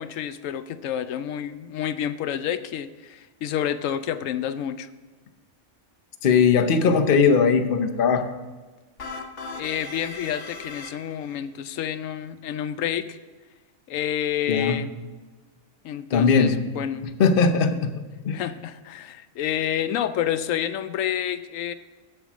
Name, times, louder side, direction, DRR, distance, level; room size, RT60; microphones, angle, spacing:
voice 1, 0.0-4.9 9.5-13.2 13.9-14.9 15.8-17.1 18.3-21.7, left 10 dB, 90° left, 12 dB, 1.0 m, -29 dB
voice 2, 6.2-8.3 14.5-14.8 16.1-16.6 17.2-17.9 18.2-18.4, left 5 dB, 50° left, 7 dB, 0.9 m, -19 dB
sound 1, 9.0-11.4, left 4 dB, 70° left, 1.4 m, -38 dB
8.1 x 7.6 x 6.1 m, 1.3 s
omnidirectional pair, 1.3 m